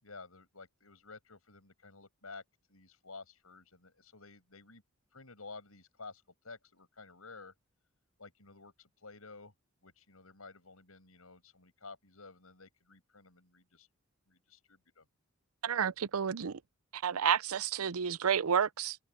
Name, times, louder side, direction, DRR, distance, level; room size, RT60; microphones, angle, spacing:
voice 1, 0.0-2.4 2.7-4.8 5.1-7.5 8.2-9.5 9.8-13.9 14.3-15.1, left 3 dB, 80° left, 5.9 m, -52 dB
voice 2, 15.6-16.6 16.9-19.0, right 7 dB, 80° right, 0.6 m, -30 dB
head